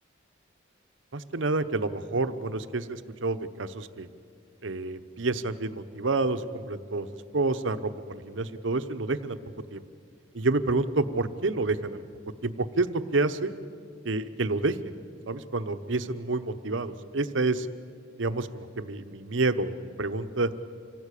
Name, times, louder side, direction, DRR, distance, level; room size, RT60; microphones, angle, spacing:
voice 1, 1.1-4.1 4.6-7.1 7.3-9.4 9.7-9.8 10.3-12.0 12.4-13.5 14.0-14.9 15.3-17.7 18.2-20.5, right 3 dB, 75° right, 11 dB, 1.0 m, -29 dB
26.5 x 17.0 x 8.4 m, 2.3 s
head